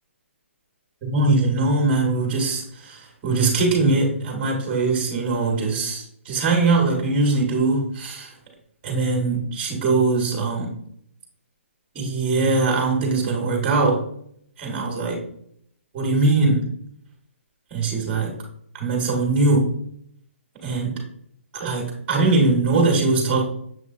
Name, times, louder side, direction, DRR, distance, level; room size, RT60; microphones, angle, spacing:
voice 1, 1.0-8.3 8.8-10.7 11.9-14.0 14.6-15.2 15.9-16.6 17.7-18.3 18.7-19.7 20.6-20.9 21.5-23.4, right 3 dB, 15° right, 0 dB, 1.2 m, -21 dB
6.7 x 3.1 x 2.5 m, 0.66 s
hypercardioid pair, 170°, 7 cm